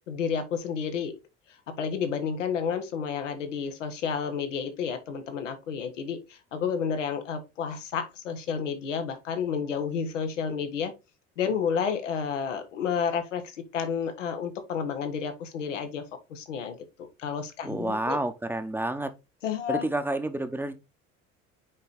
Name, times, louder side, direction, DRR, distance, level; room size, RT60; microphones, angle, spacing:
voice 1, 0.1-1.1 1.7-10.9 11.4-16.0 16.3-16.8 17.2-18.2 19.4-19.9, left 6 dB, 75° left, 1.4 m, -31 dB
voice 2, 17.6-19.1 19.7-20.8, right 1 dB, 5° right, 1.1 m, -29 dB
6.2 x 5.2 x 4.1 m
figure-of-eight pair, 60°, 38 cm